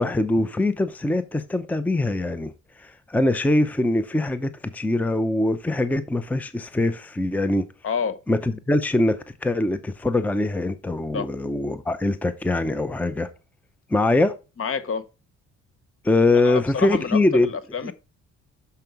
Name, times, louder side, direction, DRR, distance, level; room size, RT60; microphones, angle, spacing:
voice 1, 0.0-7.7 8.3-13.3 13.9-14.4 16.0-17.6 17.8-17.9, left 2 dB, 5° left, 0.6 m, -23 dB
voice 2, 7.8-8.2 11.1-11.3 14.6-15.0 16.4-17.2 17.7-17.9, left 6 dB, 45° left, 0.9 m, -27 dB
6.9 x 5.2 x 4.6 m
cardioid pair, 90°, 30 cm